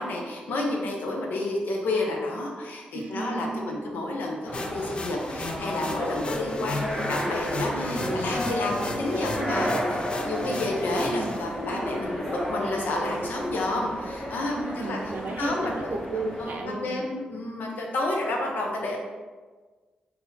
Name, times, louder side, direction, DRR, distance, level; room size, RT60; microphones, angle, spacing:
voice 1, 0.0-9.7 10.2-15.0 15.4-15.9 16.4-19.0, left 2 dB, 85° left, 0 dB, 0.8 m, -30 dB
voice 2, 2.9-3.8 7.7-8.1 9.1-9.8 10.2-10.6 11.1-11.4 14.5-17.0, right 3 dB, 65° right, 2 dB, 0.5 m, -34 dB
sound 1, 4.4-16.6, equal, 15° left, 1.2 m, -32 dB
sound 2, 4.5-11.4, left 2 dB, 35° left, 0.4 m, -36 dB
4.0 x 2.8 x 4.0 m, 1.4 s
wide cardioid pair, 165°, 3 cm